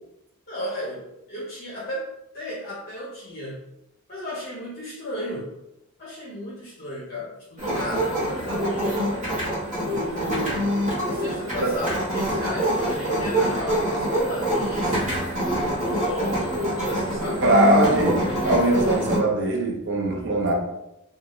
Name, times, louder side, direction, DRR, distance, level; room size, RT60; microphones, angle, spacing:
voice 1, 0.5-3.7 4.1-5.5 6.0-9.2 9.8-15.2 15.7-17.4, equal, 45° left, -7 dB, 0.7 m, -34 dB
sound 1, 7.6-19.2, equal, 35° right, 1.0 m, -25 dB
voice 2, 17.4-20.5, right 1 dB, 55° right, -1 dB, 0.6 m, -21 dB
2.6 x 2.3 x 3.0 m, 0.87 s
head